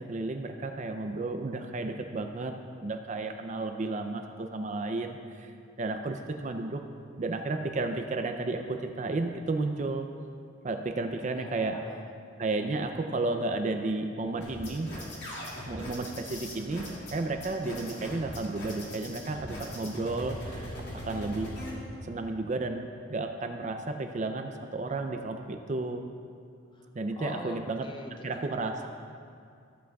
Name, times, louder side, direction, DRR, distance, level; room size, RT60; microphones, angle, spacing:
voice 1, 0.0-6.8 7.2-10.1 10.6-11.8 12.4-15.0 15.7-21.6 22.0-26.1 26.9-27.9 28.2-28.9, right 2 dB, 35° right, 6 dB, 0.4 m, -33 dB
voice 2, 11.3-12.1 26.7-26.9 27.2-28.3 28.6-28.9, left 1 dB, 25° left, 4 dB, 0.5 m, -43 dB
sound 1, 14.4-21.7, equal, 55° left, 2.4 m, -40 dB
15.0 x 8.3 x 2.3 m, 2.4 s
head